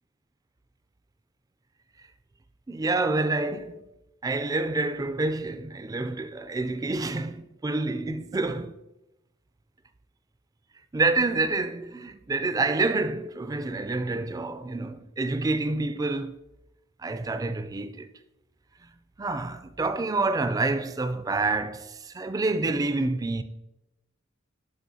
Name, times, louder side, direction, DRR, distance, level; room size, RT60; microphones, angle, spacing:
voice 1, 2.7-3.8 4.2-8.8 10.9-16.4 17.0-18.1 19.2-23.4, right 3 dB, 15° right, 0.3 m, -28 dB
12.0 x 5.1 x 2.7 m
head